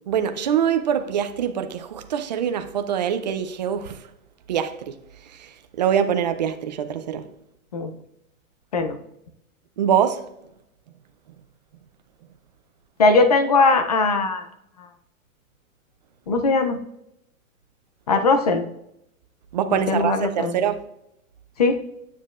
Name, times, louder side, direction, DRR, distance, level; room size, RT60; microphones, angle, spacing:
voice 1, 0.1-4.0 4.5-5.0 5.3-7.2 9.8-10.2 19.5-20.8, right 8 dB, 35° right, 0.4 m, -24 dB
voice 2, 13.0-14.4 14.8-14.9 16.3-16.8 18.1-18.7 19.7-20.5 21.6-21.8, left 3 dB, 30° left, 0.4 m, -19 dB
9.7 x 7.4 x 2.4 m
hypercardioid pair, 160°, 41 cm